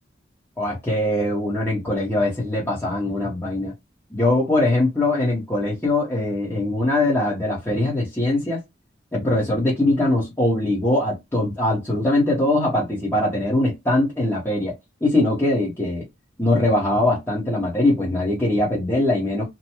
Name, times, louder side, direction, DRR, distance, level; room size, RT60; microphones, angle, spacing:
voice 1, 0.6-3.7 4.1-8.6 9.1-14.7 15.0-16.0 16.4-19.4, left 1 dB, 15° left, 1.1 m, -21 dB
2.9 x 2.2 x 2.9 m
head